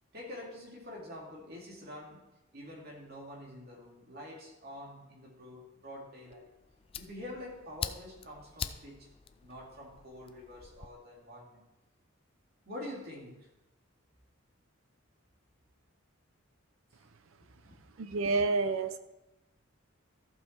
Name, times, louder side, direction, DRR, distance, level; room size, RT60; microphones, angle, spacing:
voice 1, 0.1-2.2 2.5-6.5 7.0-9.1 9.4-11.6 12.7-13.5 17.6-17.8, left 1 dB, 50° right, -2 dB, 2.6 m, -46 dB
Fire, 6.3-10.9, left 7 dB, 25° left, 0.3 m, -44 dB
voice 2, 17.9-19.0, right 3 dB, 70° right, 11 dB, 0.6 m, -29 dB
14.0 x 5.5 x 4.5 m, 0.98 s
head